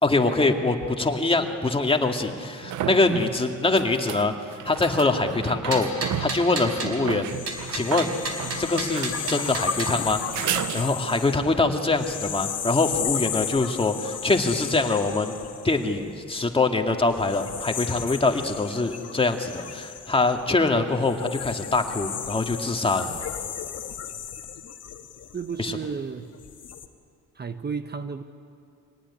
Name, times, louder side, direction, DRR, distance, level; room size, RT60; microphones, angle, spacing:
voice 1, 0.0-4.3 4.6-7.3 7.7-8.1 8.6-10.2 10.7-15.4 15.6-23.1 25.6-25.8, left 3 dB, 20° left, 4 dB, 2.2 m, -24 dB
sound 1, 0.8-0.9 2.2-11.3 14.7-14.8, right 11 dB, 80° right, 0.9 m, -34 dB
sound 2, 5.7-7.0 7.5-10.0, right 3 dB, 55° right, 4.2 m, -32 dB
sound 3, 7.3-16.5 17.1-25.8 26.3-26.9, left 8 dB, 55° left, 1.8 m, -34 dB
voice 2, 25.3-26.3 27.4-28.2, right 6 dB, 35° right, 9 dB, 1.0 m, -32 dB
25.0 x 18.5 x 9.8 m, 2.4 s
cardioid pair, 90°, 30 cm